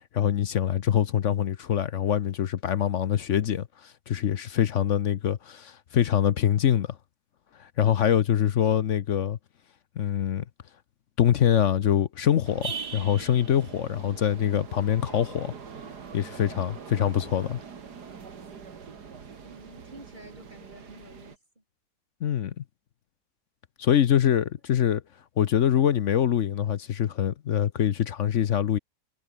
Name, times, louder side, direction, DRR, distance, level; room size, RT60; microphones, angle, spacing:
voice 1, 0.1-7.0 7.6-9.4 10.0-10.4 11.2-15.5 16.1-17.6 22.2-22.6 23.8-25.0 25.4-28.8, left 10 dB, 55° left, 0.9 m, -24 dB
sound 1, 12.4-21.4, right 6 dB, 80° right, 2.6 m, -42 dB
voice 2, 19.4-21.6, right 1 dB, 25° right, 8.2 m, -49 dB
omnidirectional pair, 1.7 m